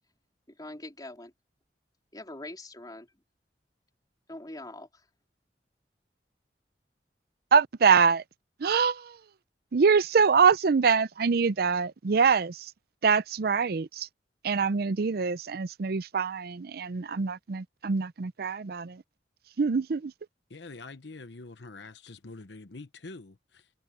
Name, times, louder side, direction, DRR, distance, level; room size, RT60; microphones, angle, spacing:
voice 1, 0.5-1.3 2.1-3.1 4.3-5.1, left 1 dB, 25° left, 3.9 m, -43 dB
voice 2, 7.5-8.2 8.6-9.2 9.7-12.7 13.0-14.1 14.4-19.0 19.6-20.1, right 5 dB, 60° right, 0.5 m, -24 dB
voice 3, 20.5-23.7, left 3 dB, 85° left, 1.0 m, -45 dB
head